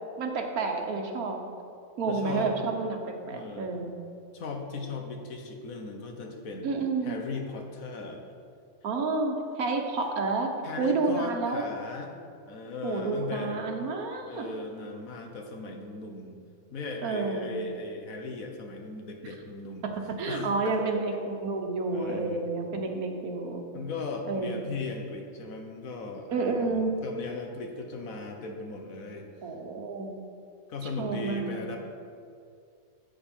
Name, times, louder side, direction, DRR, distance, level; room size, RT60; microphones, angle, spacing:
voice 1, 0.2-1.4 2.0-3.9 6.6-7.2 8.8-10.5 10.8-11.6 12.8-14.4 17.0-17.5 19.8-23.6 24.3-24.6 26.3-26.9 29.4-30.1 31.0-31.6, right 3 dB, 80° right, 3 dB, 1.6 m, -30 dB
voice 2, 2.1-2.6 3.3-3.8 4.3-6.7 7.0-8.3 10.6-12.1 12.5-14.0 14.3-16.3 16.7-19.9 20.3-20.9 21.9-22.4 23.7-29.3 30.7-31.8, left 3 dB, 70° left, 3 dB, 1.5 m, -37 dB
11.5 x 7.9 x 4.5 m, 2.4 s
omnidirectional pair, 1.5 m